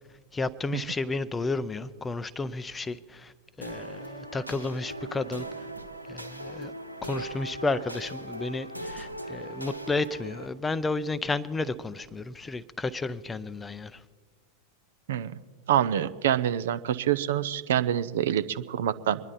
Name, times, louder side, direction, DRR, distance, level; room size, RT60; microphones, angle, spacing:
voice 1, 0.3-3.3 3.6-5.4 6.1-6.7 7.0-14.0, left 3 dB, 15° left, 0.5 m, -32 dB
sound 1, 3.6-10.5, right 1 dB, 90° left, 1.2 m, -39 dB
voice 2, 15.7-19.2, right 10 dB, 60° right, 0.6 m, -26 dB
24.5 x 11.0 x 4.3 m
figure-of-eight pair, 90°, 0 cm